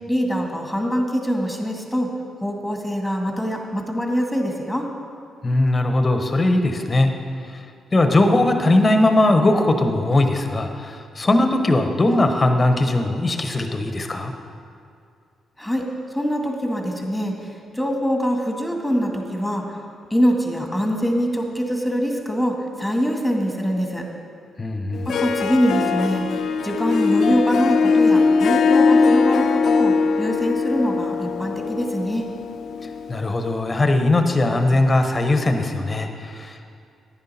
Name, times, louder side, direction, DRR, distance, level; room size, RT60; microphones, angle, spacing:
voice 1, 0.1-2.1 2.4-4.9 15.6-15.8 16.1-17.3 17.7-19.6 20.1-24.0 25.1-26.2 26.6-32.3, equal, 5° left, 2 dB, 2.0 m, -23 dB
voice 2, 5.4-7.1 7.9-14.3 24.6-25.1 33.1-36.6, left 2 dB, 30° left, 6 dB, 1.1 m, -19 dB
Harp, 24.9-33.5, left 4 dB, 65° left, 0.5 m, -20 dB
10.5 x 9.9 x 4.3 m, 2.3 s
hypercardioid pair, 45°, 0 cm